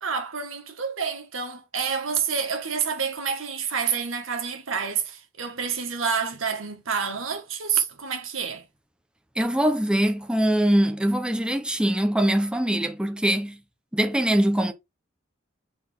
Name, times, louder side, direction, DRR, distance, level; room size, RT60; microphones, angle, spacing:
voice 1, 0.0-8.6, right 6 dB, 80° right, 1.8 m, -28 dB
voice 2, 9.4-13.6 13.9-14.7, right 1 dB, 5° right, 0.9 m, -22 dB
7.9 x 4.2 x 3.6 m
head